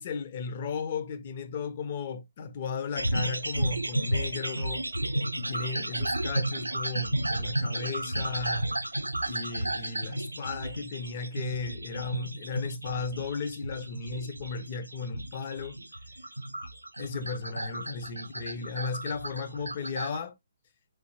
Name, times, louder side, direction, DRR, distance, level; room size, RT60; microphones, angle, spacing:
voice 1, 0.0-4.8 5.4-8.7 9.3-15.8 17.0-20.3, left 5 dB, 40° left, 0.6 m, -35 dB
sound 1, 3.0-20.2, right 1 dB, 85° right, 0.4 m, -33 dB
4.1 x 3.3 x 2.8 m
figure-of-eight pair, 135°, 0 cm